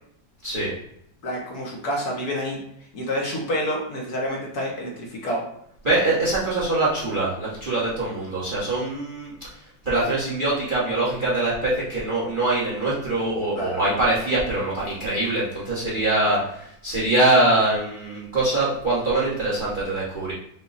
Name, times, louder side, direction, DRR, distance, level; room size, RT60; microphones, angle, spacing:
voice 1, 1.2-2.6 2.9-5.5 13.6-13.8 16.3-16.5, equal, 60° left, -2 dB, 1.3 m, -28 dB
voice 2, 5.8-9.3 9.8-16.4 16.8-20.3, right 2 dB, 35° right, -7 dB, 1.0 m, -23 dB
5.8 x 2.2 x 3.9 m, 0.72 s
omnidirectional pair, 2.1 m